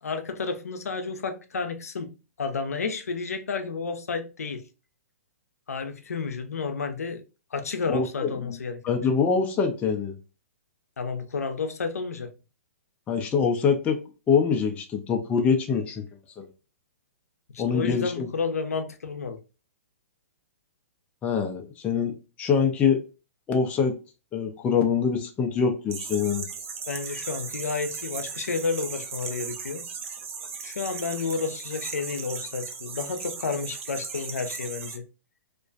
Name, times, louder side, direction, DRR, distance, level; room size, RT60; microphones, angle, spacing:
voice 1, 0.0-4.7 5.7-7.2 7.5-9.0 11.0-12.3 17.5-19.4 26.9-29.9 30.6-35.0, left 4 dB, 85° left, 0.5 m, -31 dB
voice 2, 7.9-8.5 8.8-10.1 13.1-14.0 14.3-16.0 16.4-16.5 17.6-18.3 21.2-23.0 23.5-24.0 24.3-26.5, left 6 dB, 15° left, 0.4 m, -24 dB
sound 1, 25.9-35.0, right 6 dB, 60° right, 0.5 m, -37 dB
2.4 x 2.1 x 2.4 m
hypercardioid pair, 130°, 8 cm